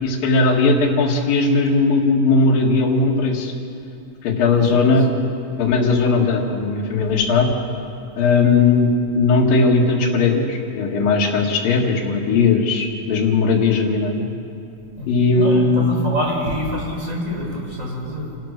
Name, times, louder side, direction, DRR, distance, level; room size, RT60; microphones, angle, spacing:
voice 1, 0.0-3.5 4.2-5.1 5.6-7.5 8.2-14.3 15.1-15.9, left 3 dB, 80° left, -3 dB, 3.7 m, -18 dB
voice 2, 4.5-4.9 15.0-18.4, equal, 20° right, -2 dB, 5.2 m, -27 dB
28.5 x 17.5 x 6.6 m, 2.6 s
omnidirectional pair, 4.0 m